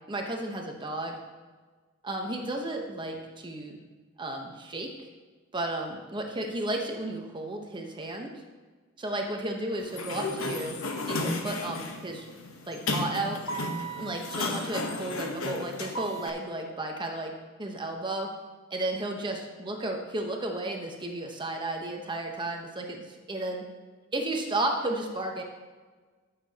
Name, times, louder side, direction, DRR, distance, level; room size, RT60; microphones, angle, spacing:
voice 1, 0.1-1.2 2.0-3.8 4.2-4.9 5.5-8.3 9.0-10.8 11.1-12.3 12.7-13.4 14.0-17.3 17.6-18.3 18.7-23.6 24.1-25.4, right 2 dB, 25° right, 2 dB, 1.0 m, -33 dB
Sliding door, 9.8-16.3, left 2 dB, 75° left, 1.1 m, -33 dB
14.5 x 6.9 x 2.9 m, 1.4 s
head